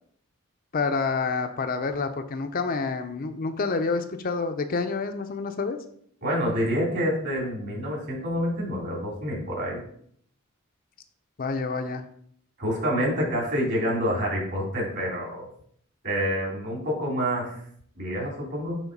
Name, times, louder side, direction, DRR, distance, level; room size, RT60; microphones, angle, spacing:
voice 1, 0.7-5.8 11.4-12.0, left 4 dB, 40° left, 7 dB, 0.5 m, -28 dB
voice 2, 6.2-9.8 12.6-15.5 16.0-17.6 18.0-18.8, equal, 50° right, -4 dB, 3.1 m, -27 dB
7.1 x 3.6 x 5.3 m, 0.64 s
head